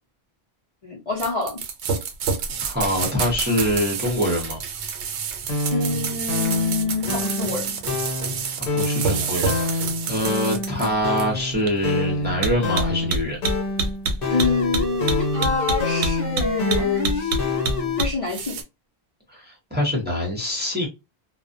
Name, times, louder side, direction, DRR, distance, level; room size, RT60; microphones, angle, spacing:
voice 1, 0.8-1.6 5.7-7.7 14.3-17.3 18.0-18.6, left 4 dB, 35° left, 0.6 m, -26 dB
sound 1, 1.2-18.6, right 4 dB, 85° right, 0.9 m, -27 dB
voice 2, 2.6-4.6 8.6-13.4 19.3-20.9, equal, 10° right, 0.7 m, -25 dB
sound 2, 5.4-18.0, left 3 dB, 55° left, 1.0 m, -27 dB
2.4 x 2.1 x 2.5 m
omnidirectional pair, 1.1 m